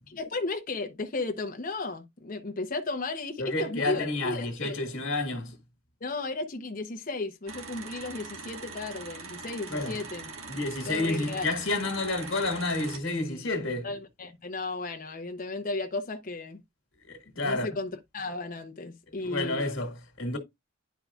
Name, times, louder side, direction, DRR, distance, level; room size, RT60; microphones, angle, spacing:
voice 1, 0.1-4.8 6.0-10.3 10.9-11.5 13.8-16.6 17.4-19.7, left 3 dB, 40° left, 0.8 m, -34 dB
voice 2, 3.4-5.5 9.7-9.9 10.5-13.9 17.1-17.7 19.2-20.4, left 2 dB, 70° left, 1.7 m, -30 dB
sound 1, 7.5-13.0, right 4 dB, 85° right, 1.5 m, -42 dB
10.5 x 4.7 x 2.4 m
head